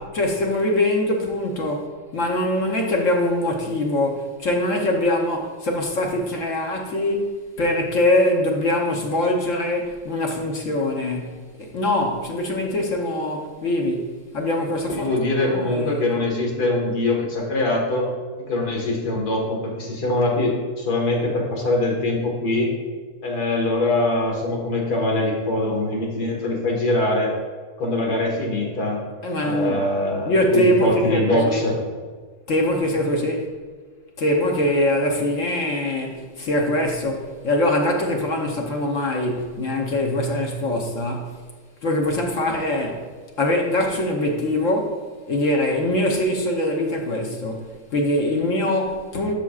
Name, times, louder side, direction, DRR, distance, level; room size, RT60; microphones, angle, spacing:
voice 1, 0.0-15.2 15.4-16.1 29.2-29.9 30.3-31.6 32.5-33.5 34.2-41.3 41.8-43.1 43.4-49.3, left 1 dB, 60° left, 1 dB, 1.2 m, -23 dB
voice 2, 14.9-18.1 18.5-22.7 23.2-27.3 27.8-29.0 29.4-31.8, left 2 dB, 80° left, -1 dB, 2.1 m, -23 dB
12.0 x 5.9 x 2.4 m, 1.5 s
omnidirectional pair, 1.6 m